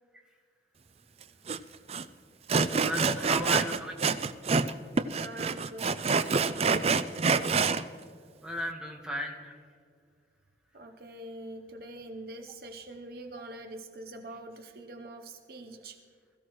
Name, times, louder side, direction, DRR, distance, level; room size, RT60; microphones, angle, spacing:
Sawing, 1.5-1.6 1.9-2.0 2.5-4.7 5.0-7.8, right 4 dB, 35° right, 0.4 m, -26 dB
voice 1, 2.7-3.9 8.4-9.5, left 1 dB, 5° right, 0 dB, 1.4 m, -36 dB
voice 2, 3.3-3.7 5.2-7.1 10.7-16.0, right 1 dB, 55° right, 5 dB, 0.8 m, -44 dB
21.5 x 14.5 x 3.1 m, 2.1 s
head